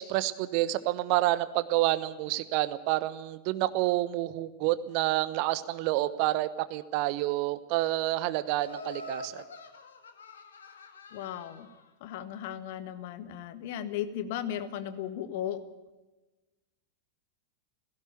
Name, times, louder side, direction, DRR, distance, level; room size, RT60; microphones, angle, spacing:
voice 1, 0.0-9.4, right 16 dB, 45° right, 14 dB, 1.0 m, -28 dB
Laughter, 8.6-11.8, left 2 dB, 65° left, 2.0 m, -45 dB
voice 2, 11.1-11.7 12.0-15.6, left 10 dB, 50° left, 11 dB, 1.7 m, -36 dB
17.0 x 16.5 x 9.2 m, 1.1 s
figure-of-eight pair, 90°, 0 cm